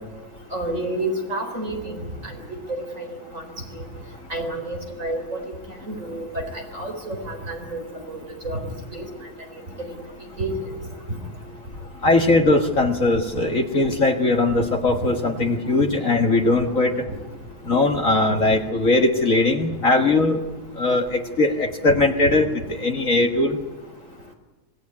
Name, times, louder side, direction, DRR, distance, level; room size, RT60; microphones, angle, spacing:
voice 1, 0.5-2.3 2.7-3.4 4.3-5.4 5.9-6.4 6.7-7.8 8.1-8.6 8.9-9.1 9.8-9.9 10.4-10.6, right 2 dB, 25° right, 3 dB, 4.2 m, -29 dB
voice 2, 12.0-16.9 17.7-20.4 20.8-23.6, left 2 dB, 35° left, 3 dB, 1.4 m, -20 dB
26.0 x 18.0 x 9.6 m, 1.2 s
omnidirectional pair, 3.3 m